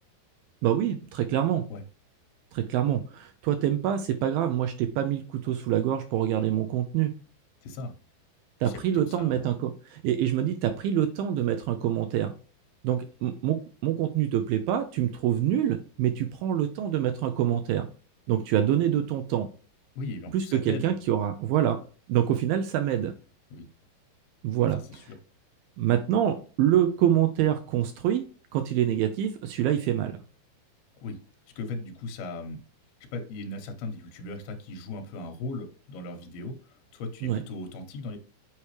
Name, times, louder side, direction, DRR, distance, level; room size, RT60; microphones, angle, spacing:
voice 1, 0.6-1.6 2.5-7.1 8.6-12.3 12.8-13.6 13.8-17.9 18.3-19.5 20.3-21.8 22.1-23.1 24.4-24.8 25.8-28.2 28.5-30.1 37.2-37.4, right 11 dB, 80° right, 8 dB, 2.2 m, -26 dB
voice 2, 7.6-7.9 8.6-9.5 20.0-20.9 23.5-23.7 24.6-25.2 31.0-31.2 31.6-32.6 33.1-38.2, left 2 dB, 70° left, 3 dB, 3.1 m, -38 dB
8.5 x 4.8 x 3.2 m, 0.37 s
omnidirectional pair, 4.7 m